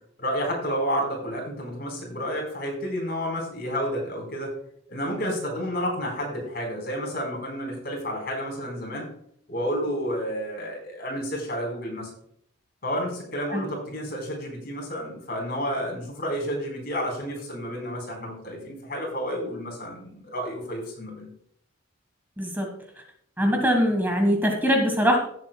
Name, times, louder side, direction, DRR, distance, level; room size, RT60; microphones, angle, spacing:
voice 1, 0.2-4.5 4.9-9.1 9.5-12.1 12.8-21.3, equal, 50° left, 1 dB, 4.0 m, -30 dB
voice 2, 22.4-22.7 23.4-25.2, equal, 10° right, 3 dB, 1.4 m, -22 dB
16.5 x 7.7 x 2.2 m, 0.67 s
head